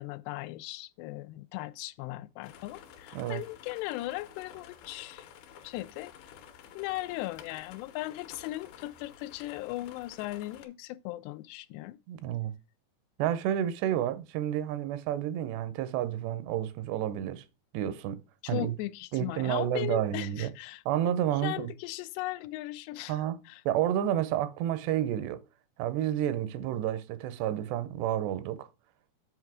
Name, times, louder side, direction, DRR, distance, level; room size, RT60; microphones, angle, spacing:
voice 1, 0.0-5.3 5.6-6.1 6.8-12.0 18.4-20.8 21.3-23.6, left 17 dB, 90° left, 2.7 m, -38 dB
sound 1, 2.4-10.7, left 9 dB, 75° left, 2.7 m, -51 dB
voice 2, 12.1-12.5 13.2-17.4 17.7-18.2 18.5-18.8 19.1-20.5 20.9-21.7 23.1-23.4 23.7-25.4 25.8-28.7, right 11 dB, 85° right, 2.9 m, -30 dB
8.0 x 4.7 x 4.7 m
omnidirectional pair, 4.7 m